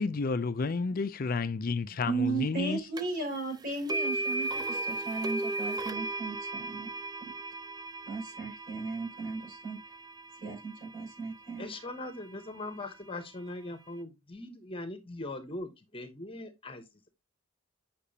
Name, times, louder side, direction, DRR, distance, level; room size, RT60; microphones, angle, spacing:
voice 1, 0.0-2.8, left 4 dB, 45° left, 0.4 m, -31 dB
voice 2, 2.0-6.9 7.2-7.3 8.1-9.8 10.4-11.6, right 4 dB, 45° right, 5.5 m, -36 dB
sound 1, 3.0-3.1 3.9-11.9, right 2 dB, 20° right, 0.4 m, -36 dB
voice 3, 11.6-17.1, left 2 dB, 25° left, 1.0 m, -41 dB
8.3 x 5.9 x 2.8 m
head